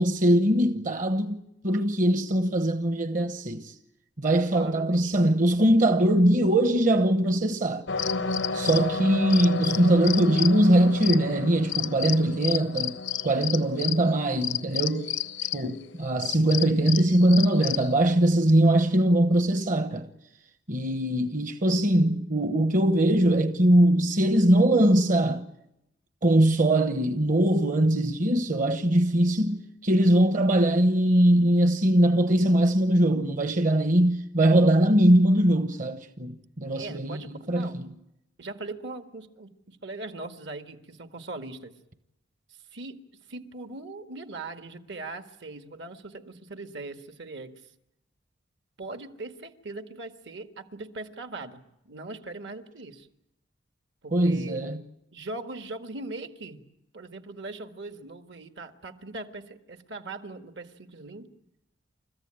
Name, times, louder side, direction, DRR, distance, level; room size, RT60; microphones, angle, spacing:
voice 1, 0.0-3.8 4.2-7.9 8.5-13.0 13.2-15.1 15.5-20.1 20.7-25.5 26.2-37.9 54.1-54.8, right 1 dB, 45° right, 1.1 m, -22 dB
voice 2, 4.5-5.1 36.7-37.8 38.4-41.7 42.7-47.6 48.8-53.1 54.0-54.7 55.1-56.6 56.9-61.3, right 2 dB, 70° right, 1.8 m, -40 dB
sound 1, 7.9-15.7 16.0-17.9, left 7 dB, 85° left, 0.9 m, -31 dB
30.0 x 14.5 x 8.9 m
head